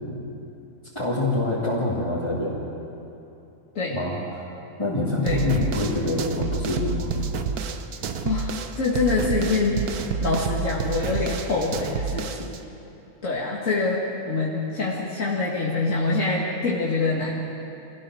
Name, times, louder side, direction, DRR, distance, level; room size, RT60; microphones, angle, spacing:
voice 1, 0.9-2.6 3.9-4.4 4.8-7.1, left 2 dB, 20° left, -8 dB, 3.0 m, -25 dB
sound 1, 5.3-12.6, right 5 dB, 85° right, 1.5 m, -29 dB
voice 2, 8.2-9.9 10.2-12.6 13.2-17.4, left 3 dB, 60° left, -5 dB, 2.4 m, -25 dB
25.5 x 17.0 x 6.4 m, 2.9 s
omnidirectional pair, 1.6 m